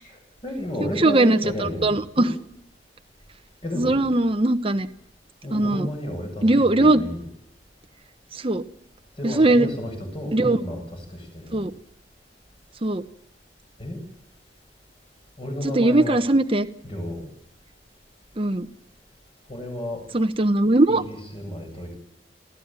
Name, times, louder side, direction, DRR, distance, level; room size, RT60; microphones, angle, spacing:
voice 1, 0.1-2.3 3.6-4.1 5.4-7.3 9.2-11.7 13.8-14.0 15.4-16.3 16.8-17.3 19.5-20.0 20.9-21.9, left 1 dB, 30° left, 3 dB, 7.5 m, -32 dB
voice 2, 1.0-2.3 3.7-4.9 5.5-5.9 6.4-7.0 8.4-8.6 9.2-9.7 10.3-10.6 11.5-11.7 12.8-13.0 15.7-16.7 18.4-18.7 20.1-21.0, right 2 dB, 30° right, 8 dB, 1.0 m, -20 dB
27.5 x 16.0 x 9.0 m, 0.73 s
head